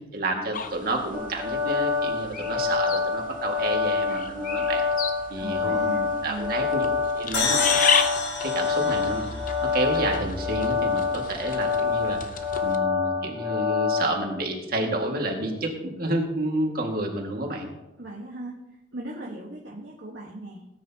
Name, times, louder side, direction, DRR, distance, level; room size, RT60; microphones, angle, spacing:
voice 1, 0.0-4.8 5.3-6.9 7.2-7.8 8.4-12.2 12.6-17.7, right 1 dB, 55° right, 1 dB, 2.0 m, -30 dB
sound 1, 0.5-12.8, left 6 dB, 45° left, 0.7 m, -33 dB
sound 2, 1.1-14.1, left 5 dB, 5° left, 2.6 m, -27 dB
voice 2, 5.4-6.6 18.0-18.6 18.9-20.8, right 1 dB, 75° right, -3 dB, 1.4 m, -38 dB
sound 3, 7.3-10.9, left 4 dB, 75° left, 1.9 m, -30 dB
18.0 x 9.3 x 2.9 m, 0.97 s
head